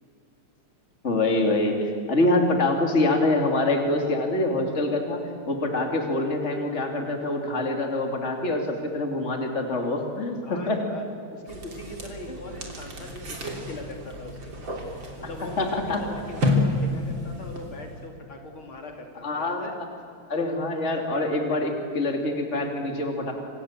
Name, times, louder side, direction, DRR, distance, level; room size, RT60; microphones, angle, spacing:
voice 1, 1.0-5.2 5.5-10.8 15.6-16.0 19.2-19.8 20.3-23.3, left 2 dB, 30° left, 3 dB, 3.2 m, -25 dB
voice 2, 10.4-11.0 11.3-14.7 15.2-19.7, left 1 dB, 70° left, 2 dB, 3.9 m, -40 dB
sound 1, 11.5-18.1, left 2 dB, 60° right, 4.0 m, -30 dB
29.0 x 26.0 x 7.5 m, 2.5 s
omnidirectional pair, 2.4 m